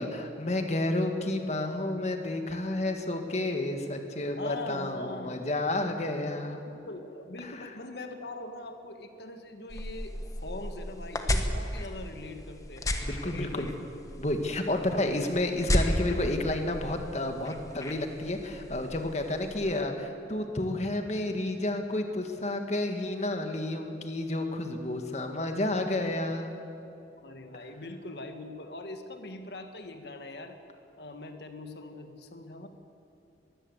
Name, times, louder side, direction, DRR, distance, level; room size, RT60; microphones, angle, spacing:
voice 1, 0.0-6.6 7.4-7.7 13.0-13.7 14.2-26.5, left 1 dB, 40° left, 5 dB, 1.8 m, -31 dB
voice 2, 4.4-5.4 6.9-10.1 10.4-12.9 13.2-13.8 19.6-19.8 27.2-30.6 31.0-32.7, left 2 dB, 65° left, 6 dB, 1.7 m, -41 dB
sound 1, 9.7-19.8, left 1 dB, 20° left, 1.4 m, -34 dB
22.0 x 15.5 x 8.1 m, 2.8 s
head